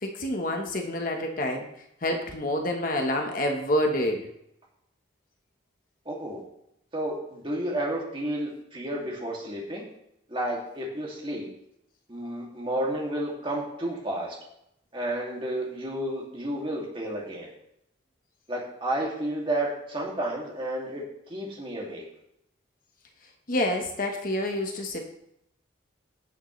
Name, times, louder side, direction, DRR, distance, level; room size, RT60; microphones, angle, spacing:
voice 1, 0.0-1.7 2.0-4.2 23.5-25.0, left 1 dB, 45° left, 3 dB, 1.1 m, -27 dB
voice 2, 6.1-6.4 6.9-9.8 10.3-11.5 12.1-14.4 14.9-17.5 18.5-21.0 21.3-22.0, right 1 dB, 25° right, -3 dB, 2.5 m, -31 dB
17.0 x 6.5 x 3.2 m, 0.77 s
head